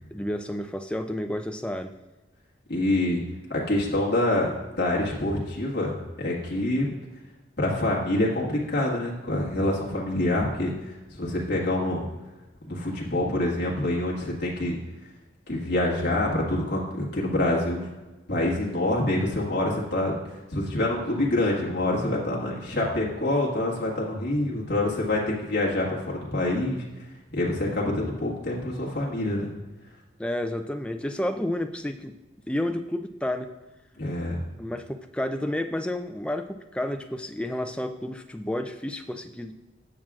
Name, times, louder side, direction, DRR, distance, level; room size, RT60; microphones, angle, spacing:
voice 1, 0.1-2.0 30.2-32.2 32.5-33.5 34.6-39.5, left 1 dB, 5° left, 6 dB, 0.4 m, -31 dB
voice 2, 2.7-3.2 3.5-6.9 7.6-12.0 12.6-14.8 15.5-17.9 18.3-26.8 27.3-29.5 34.0-34.4, left 1 dB, 55° left, -5 dB, 1.7 m, -26 dB
17.5 x 6.1 x 2.4 m, 1.1 s
head